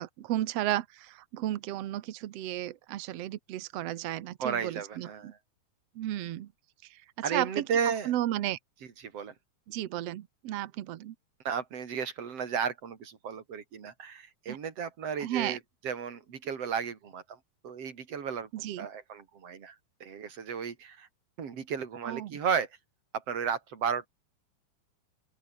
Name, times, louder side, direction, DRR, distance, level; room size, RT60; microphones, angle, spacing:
voice 1, 0.0-5.3 5.9-6.5 6.8-7.0 7.3-7.7 8.1-8.6 9.7-11.1 14.5-14.6 15.2-15.6 18.5-18.9 22.0-22.4, right 13 dB, 75° right, 1.4 m, -33 dB
voice 2, 4.4-5.4 7.2-8.1 9.0-9.3 11.5-15.6 15.8-17.4 17.6-19.8 20.0-21.1 21.4-22.7 23.1-24.1, right 7 dB, 45° right, 3.5 m, -34 dB
open air
omnidirectional pair, 4.3 m